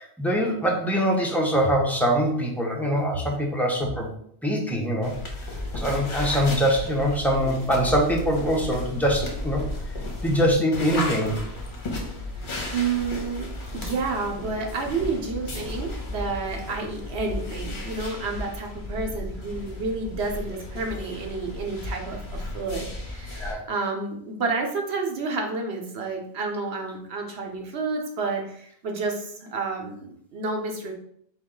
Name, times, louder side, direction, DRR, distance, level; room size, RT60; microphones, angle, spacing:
voice 1, 0.0-4.1 4.4-5.1 5.7-9.6 10.2-11.3 23.4-23.7, equal, ahead, -1 dB, 0.6 m, -23 dB
sound 1, 5.0-23.5, left 2 dB, 55° left, 1.0 m, -34 dB
voice 2, 12.4-13.5 13.7-30.9, right 4 dB, 80° right, 2 dB, 1.1 m, -30 dB
4.1 x 3.0 x 3.7 m, 0.68 s
omnidirectional pair, 1.1 m